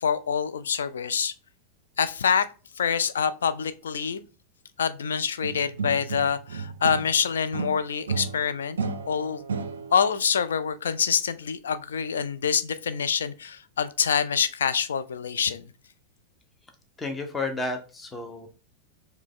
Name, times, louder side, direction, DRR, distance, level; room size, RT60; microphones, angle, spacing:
voice 1, 0.0-1.3 2.0-2.5 2.8-4.2 4.8-8.8 9.1-9.4 9.9-15.7, left 7 dB, 65° left, 0.3 m, -26 dB
sound 1, 5.4-7.2 7.5-10.1, right 5 dB, 70° right, 0.4 m, -33 dB
voice 2, 17.0-18.5, left 3 dB, 15° left, 0.6 m, -31 dB
4.6 x 2.2 x 3.6 m
figure-of-eight pair, 90°, 0 cm